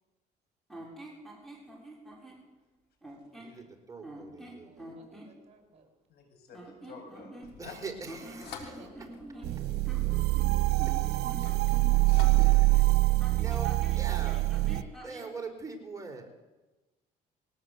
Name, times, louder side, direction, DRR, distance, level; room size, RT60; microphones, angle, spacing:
sound 1, 0.7-2.4 3.0-3.6 4.0-5.3 6.5-7.7 8.0-12.6 13.2-15.3, right 1 dB, ahead, 7.4 m, -46 dB
voice 1, 3.3-4.9 7.6-9.1 10.9-11.0 12.4-14.4 15.0-16.3, right 4 dB, 20° right, 3 dB, 4.5 m, -43 dB
voice 2, 4.6-5.9 8.6-9.7, right 2 dB, 40° right, 5 dB, 6.8 m, -59 dB
voice 3, 6.1-6.6 6.8-7.4 7.6-7.7 11.9-12.0, left 7 dB, 70° left, 5 dB, 7.0 m, -49 dB
sound 2, 7.4-14.8, left 7 dB, 85° left, 3.5 m, -52 dB
sound 3, 9.4-14.8, right 20 dB, 75° right, 1.0 m, -25 dB
22.0 x 19.5 x 8.2 m, 1.1 s
cardioid pair, 110°, 17 cm